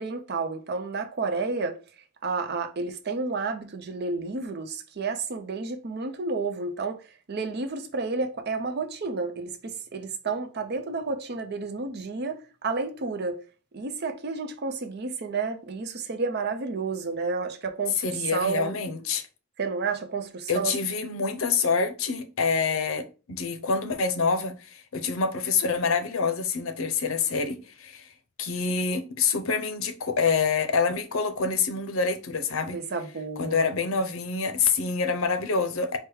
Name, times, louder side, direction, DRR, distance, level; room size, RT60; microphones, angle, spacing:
voice 1, 0.0-1.8 2.2-7.0 7.3-13.4 13.7-18.8 19.6-20.8 32.7-33.7, right 4 dB, 50° right, 0.6 m, -31 dB
voice 2, 18.0-19.3 20.5-28.1 28.4-32.8 33.4-36.0, left 5 dB, 85° left, 0.7 m, -26 dB
4.6 x 2.2 x 4.7 m
head